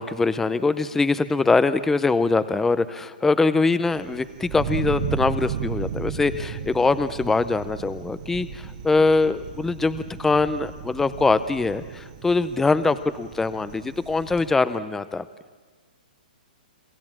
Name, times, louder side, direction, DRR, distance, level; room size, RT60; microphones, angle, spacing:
voice 1, 0.0-15.2, left 3 dB, 5° left, 13 dB, 0.6 m, -23 dB
Thunder, 3.8-14.5, right 6 dB, 45° right, 1.7 m, -34 dB
27.5 x 15.0 x 7.4 m, 1.4 s
hypercardioid pair, 145°, 5 cm